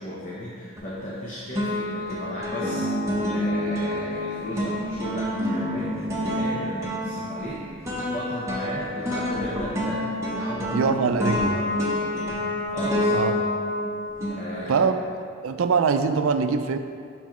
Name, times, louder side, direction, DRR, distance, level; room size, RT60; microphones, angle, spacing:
voice 1, 0.0-2.9 3.3-10.9 11.3-13.2 14.4-14.8, left 1 dB, 35° left, -6 dB, 0.8 m, -35 dB
sound 1, 0.8-1.2 1.6-15.0, left 1 dB, 15° right, 0.9 m, -28 dB
voice 2, 10.7-11.6 13.1-13.4 14.7-14.9 15.4-16.8, right 5 dB, 75° right, 9 dB, 0.4 m, -23 dB
7.1 x 5.7 x 3.0 m, 2.3 s
head